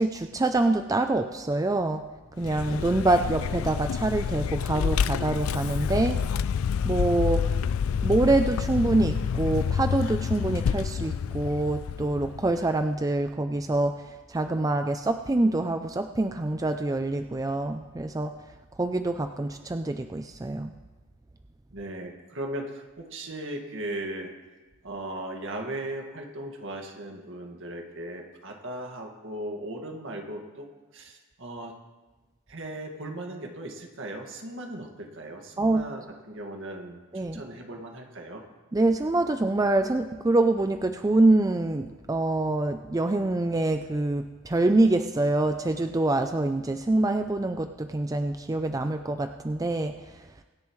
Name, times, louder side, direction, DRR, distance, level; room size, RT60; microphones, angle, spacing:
voice 1, 0.0-2.0 2.4-6.2 6.8-7.5 8.0-18.3 18.8-20.7 35.6-35.9 37.1-37.4 38.7-49.9, right 2 dB, 15° right, 7 dB, 0.4 m, -25 dB
Vehicle, 2.4-12.7, left 7 dB, 75° left, 0.4 m, -28 dB
voice 2, 21.7-24.3 24.8-30.7 30.9-31.7 32.5-38.4, right 1 dB, 65° right, 2 dB, 2.0 m, -37 dB
24.0 x 10.5 x 3.2 m, 1.2 s
head